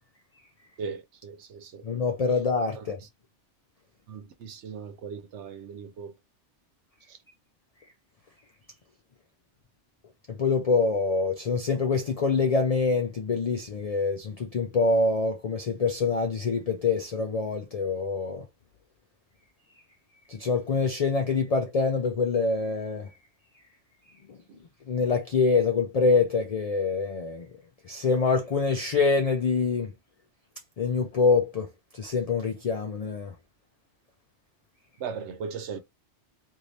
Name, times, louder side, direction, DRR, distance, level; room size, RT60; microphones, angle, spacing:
voice 1, 0.8-1.8 2.7-3.1 4.1-6.1 7.1-7.2 24.5-24.6 35.0-35.8, right 6 dB, 75° right, 0.9 m, -38 dB
voice 2, 1.8-3.0 10.4-18.4 20.3-23.1 24.9-27.5 27.9-29.9 30.8-31.7 32.0-33.3, left 4 dB, 70° left, 0.3 m, -25 dB
2.7 x 2.6 x 3.2 m
omnidirectional pair, 1.2 m